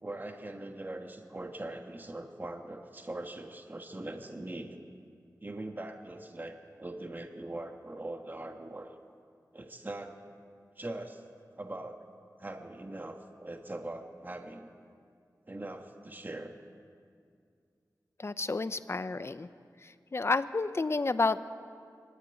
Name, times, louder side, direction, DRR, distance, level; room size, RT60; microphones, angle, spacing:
voice 1, 0.0-4.8 5.4-8.9 9.5-10.2 10.8-11.2 11.6-12.0 12.4-14.7 15.5-16.5, right 2 dB, 30° right, 4 dB, 1.4 m, -41 dB
voice 2, 18.2-19.5 20.1-21.4, left 3 dB, 40° left, 13 dB, 0.7 m, -30 dB
23.5 x 12.0 x 9.1 m, 2.3 s
wide cardioid pair, 95°, 7 cm